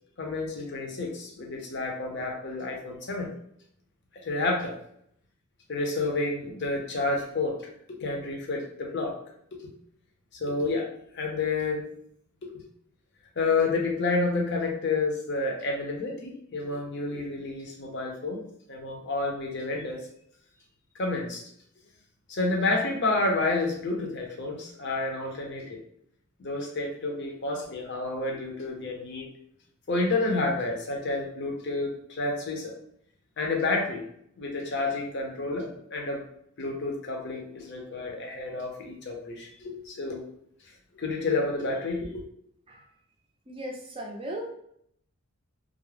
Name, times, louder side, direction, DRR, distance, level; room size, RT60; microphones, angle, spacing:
voice 1, 0.2-3.3 4.2-4.8 5.7-7.6 7.9-9.2 9.5-9.6 10.3-10.9 11.1-11.8 12.4-12.6 13.4-18.4 18.7-20.1 20.9-21.4 22.3-25.8 26.4-29.3 29.9-32.7 33.4-34.0 34.4-36.2 36.6-40.2 41.0-42.2, left 3 dB, 50° left, 1 dB, 0.6 m, -30 dB
voice 2, 35.4-35.8 42.7-42.8 43.5-44.5, right 1 dB, 25° right, 0 dB, 0.4 m, -38 dB
2.3 x 2.0 x 3.2 m, 0.68 s
head